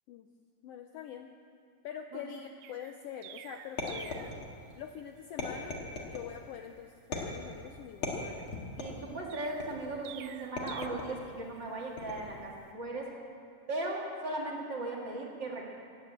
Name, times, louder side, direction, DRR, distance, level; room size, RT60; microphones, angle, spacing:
voice 1, 0.6-1.3 1.8-4.3 4.8-5.8 6.1-8.5, left 8 dB, 80° left, 6 dB, 1.4 m, -44 dB
Chirp tweet, 2.6-4.4 9.3-10.9, right 12 dB, 80° right, 1.5 m, -48 dB
sound 1, 3.8-4.7 5.4-6.3 7.1-7.6 8.0-9.1 9.6-10.0 10.6-11.2 12.0-12.4, left 3 dB, 50° left, 2.5 m, -38 dB
voice 2, 8.8-13.1 13.7-15.6, right 2 dB, 40° right, -1 dB, 2.3 m, -37 dB
16.0 x 9.6 x 8.6 m, 2.4 s
omnidirectional pair, 3.3 m